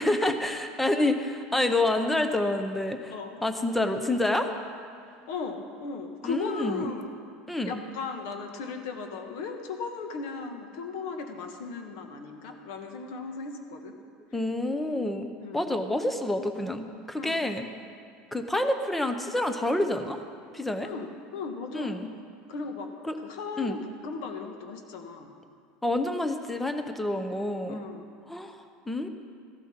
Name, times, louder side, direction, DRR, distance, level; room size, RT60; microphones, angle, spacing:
voice 1, 0.0-3.1 3.4-4.5 6.2-6.9 7.5-7.8 14.3-17.7 18.3-20.2 20.5-20.9 21.7-22.1 23.0-23.2 23.6-23.8 25.8-27.8 28.3-28.6 28.9-29.1, left 1 dB, 5° left, 7 dB, 0.6 m, -28 dB
voice 2, 3.1-3.4 5.3-7.1 7.6-13.9 15.4-15.9 17.2-17.5 20.8-22.0 22.5-22.9 23.2-25.3 27.6-28.1, left 4 dB, 60° left, 5 dB, 1.4 m, -37 dB
15.0 x 12.0 x 4.4 m, 2.3 s
cardioid pair, 170°, 3 cm